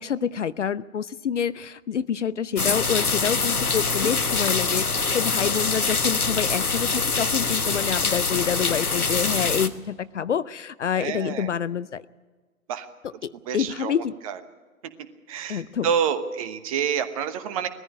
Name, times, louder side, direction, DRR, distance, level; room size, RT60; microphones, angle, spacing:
voice 1, 0.0-12.0 13.0-14.2 15.5-15.9, left 8 dB, 55° left, 17 dB, 0.6 m, -27 dB
sound 1, 2.6-9.7, left 4 dB, 85° left, 1.3 m, -24 dB
voice 2, 10.9-11.5 12.7-12.9 13.5-13.9 14.2-14.3 15.3-17.7, right 7 dB, 25° right, 10 dB, 1.1 m, -27 dB
19.5 x 14.5 x 9.8 m, 1.4 s
figure-of-eight pair, 130°, 43 cm